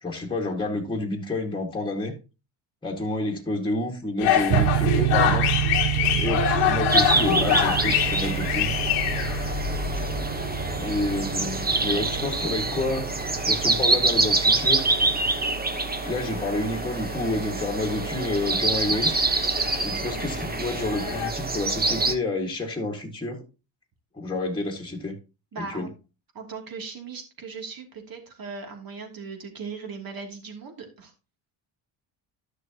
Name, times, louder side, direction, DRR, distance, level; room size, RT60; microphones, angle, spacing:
voice 1, 0.0-2.2 2.8-5.5 6.2-8.8 10.8-13.1 13.5-14.9 16.1-19.2 19.8-23.4 24.1-25.2 25.6-25.9, left 2 dB, 10° left, 2.0 m, -29 dB
sound 1, 4.2-21.3, left 9 dB, 90° left, 1.7 m, -28 dB
sound 2, 4.5-15.3, right 18 dB, 70° right, 0.6 m, -29 dB
sound 3, 6.9-22.1, right 3 dB, 20° right, 1.2 m, -26 dB
voice 2, 25.5-25.9 26.3-31.1, right 4 dB, 45° right, 2.9 m, -38 dB
12.5 x 6.5 x 2.9 m
cardioid pair, 90°, 50 cm